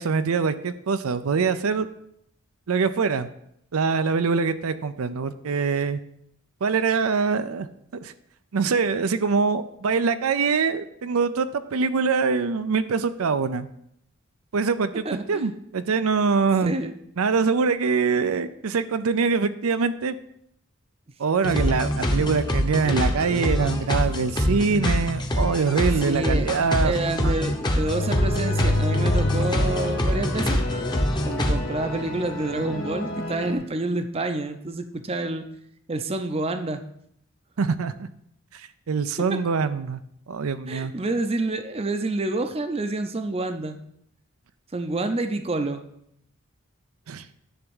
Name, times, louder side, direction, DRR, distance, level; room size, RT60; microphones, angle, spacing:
voice 1, 0.0-1.9 2.7-3.3 3.7-6.0 6.6-7.7 8.0-8.1 8.5-13.7 14.5-16.7 17.2-20.2 21.2-26.9 27.2-27.4 37.6-38.1 38.5-40.0 40.3-40.9 47.1-47.3, right 5 dB, 90° right, 12 dB, 0.5 m, -24 dB
voice 2, 15.0-15.5 16.6-16.9 26.0-26.5 26.8-30.6 31.2-35.5 35.9-36.8 39.2-39.4 40.7-43.8 44.7-45.8, right 2 dB, 30° right, 8 dB, 0.5 m, -28 dB
sound 1, 21.4-31.6, equal, 20° left, 0.8 m, -25 dB
sound 2, 27.8-33.5, left 1 dB, 70° left, 1.7 m, -28 dB
10.0 x 3.5 x 7.1 m, 0.73 s
head